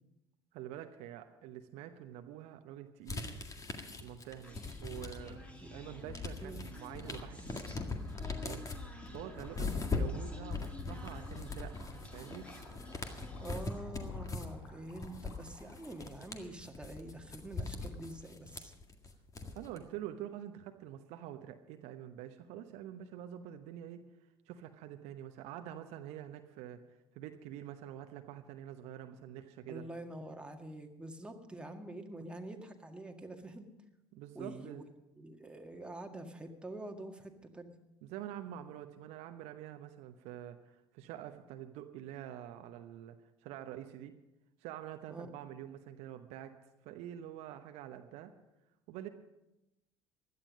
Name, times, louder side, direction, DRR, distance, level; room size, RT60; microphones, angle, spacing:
voice 1, 0.5-3.4 4.0-7.6 8.4-8.7 9.1-12.5 19.5-24.0 24.5-26.8 27.1-29.8 34.1-34.9 38.0-43.2 43.4-44.1 44.6-46.5 46.8-48.3 48.9-49.1, right 11 dB, 60° right, 7 dB, 0.9 m, -46 dB
sound 1, 3.1-5.5 5.8-19.8, left 3 dB, 25° left, 1.9 m, -41 dB
Human voice, 4.4-13.9, left 1 dB, 10° left, 2.3 m, -51 dB
sound 2, 9.3-16.0, left 1 dB, 80° left, 3.9 m, -58 dB
voice 2, 13.4-18.7 29.7-33.7 34.4-34.8 35.2-37.7 45.1-45.3, right 1 dB, 10° right, 3 dB, 1.9 m, -46 dB
16.5 x 11.5 x 5.2 m, 0.93 s
figure-of-eight pair, 60°, 13 cm